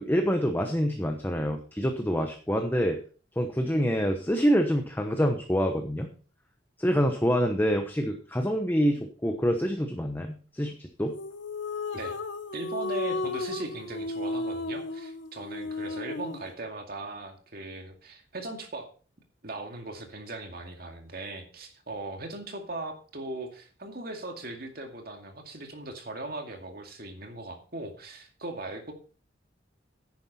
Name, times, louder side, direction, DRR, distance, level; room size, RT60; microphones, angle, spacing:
voice 1, 0.0-3.0 3.4-6.1 6.8-11.1, equal, 10° left, 4 dB, 1.0 m, -26 dB
sound 1, 11.1-16.5, left 2 dB, 80° left, 1.1 m, -34 dB
voice 2, 12.5-18.9 19.4-28.9, right 2 dB, 55° right, 4 dB, 2.2 m, -39 dB
10.5 x 9.8 x 4.2 m, 0.39 s
head